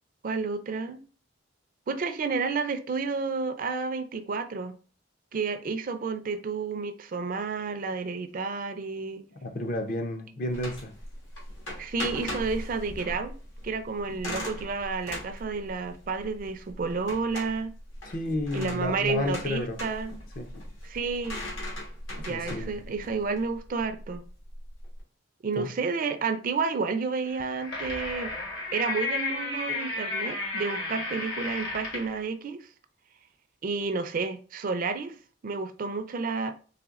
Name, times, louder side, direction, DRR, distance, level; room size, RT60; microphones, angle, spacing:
voice 1, 0.2-1.0 1.9-4.7 5.3-9.2 11.8-13.3 13.6-17.7 18.5-20.1 20.8-21.4 22.2-24.2 25.4-28.3 28.7-32.7 33.6-35.2 35.4-36.5, right 4 dB, 45° right, 0.4 m, -31 dB
voice 2, 9.3-10.9 18.1-19.8 20.4-20.5 22.3-22.8 25.6-25.7, left 1 dB, 45° left, 0.5 m, -31 dB
sound 1, 10.5-25.0, left 1 dB, 80° left, 1.4 m, -39 dB
sound 2, 27.3-32.2, left 2 dB, 60° left, 1.2 m, -33 dB
4.0 x 3.1 x 2.4 m
head